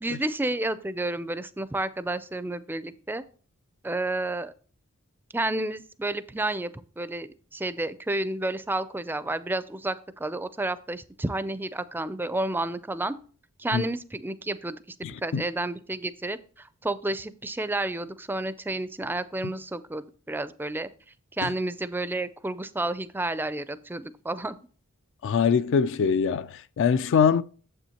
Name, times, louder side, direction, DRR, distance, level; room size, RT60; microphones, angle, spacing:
voice 1, 0.0-3.2 3.8-4.5 5.3-13.2 13.6-20.9 21.4-24.5, right 2 dB, 10° right, 0.4 m, -31 dB
voice 2, 15.0-15.4 21.4-21.5 25.2-27.4, left 6 dB, 60° left, 0.3 m, -23 dB
9.1 x 7.5 x 2.9 m
head